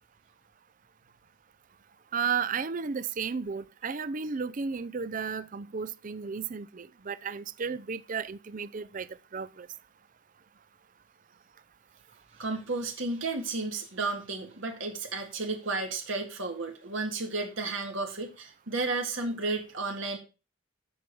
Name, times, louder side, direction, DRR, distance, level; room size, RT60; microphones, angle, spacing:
voice 1, 2.1-9.1 9.3-9.7, right 5 dB, 40° right, 0.5 m, -33 dB
voice 2, 12.4-20.2, right 3 dB, 70° right, 1.9 m, -33 dB
7.8 x 6.4 x 5.3 m
head